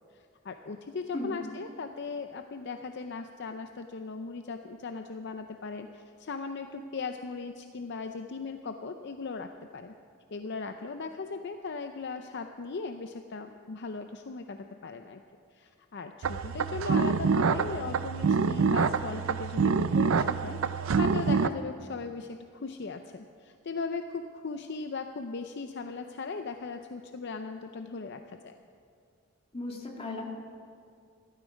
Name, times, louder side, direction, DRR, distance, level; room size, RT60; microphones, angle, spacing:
voice 1, 0.1-9.9 10.3-15.2 15.5-28.5, left 4 dB, 55° left, 6 dB, 0.5 m, -38 dB
sound 1, 16.2-21.5, right 5 dB, 75° right, 0.5 m, -26 dB
voice 2, 29.5-30.3, left 2 dB, 30° left, -1 dB, 1.9 m, -36 dB
15.0 x 13.0 x 5.2 m, 2.4 s
head